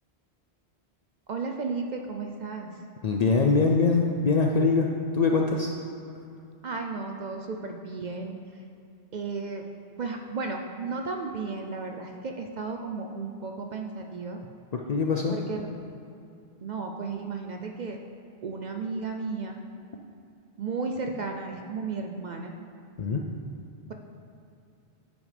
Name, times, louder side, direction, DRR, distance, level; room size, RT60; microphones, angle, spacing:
voice 1, 1.3-2.8 6.6-8.6 9.1-9.6 10.0-14.4 15.3-15.8 16.6-18.0 18.4-19.6 20.6-22.5, right 4 dB, 55° right, 3 dB, 0.5 m, -34 dB
voice 2, 3.0-4.9 5.1-5.7 14.7-15.4 23.0-23.2, left 4 dB, 55° left, 1 dB, 0.4 m, -23 dB
10.5 x 6.1 x 3.3 m, 2.6 s
omnidirectional pair, 1.1 m